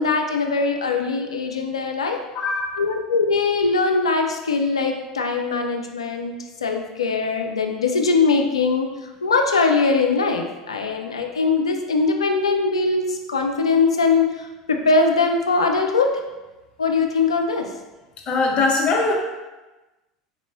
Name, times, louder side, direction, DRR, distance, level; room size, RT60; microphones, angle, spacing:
voice 1, 0.0-2.2 2.8-8.9 9.2-16.1 16.8-17.7, left 4 dB, 75° left, 4 dB, 0.4 m, -21 dB
voice 2, 2.3-2.9 18.2-19.1, left 3 dB, 40° left, 0 dB, 0.7 m, -21 dB
4.1 x 2.9 x 2.6 m, 1.1 s
figure-of-eight pair, 75°, 3 cm